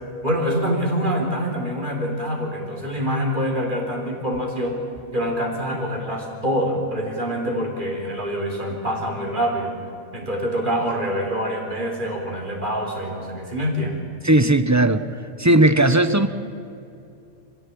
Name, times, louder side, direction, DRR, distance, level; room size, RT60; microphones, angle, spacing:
voice 1, 0.2-4.8 5.1-9.7 10.1-14.0, equal, 35° right, 1 dB, 3.8 m, -25 dB
voice 2, 14.2-15.0 15.4-16.3, right 1 dB, 15° right, 11 dB, 0.7 m, -16 dB
26.0 x 16.0 x 8.6 m, 2.7 s
omnidirectional pair, 1.4 m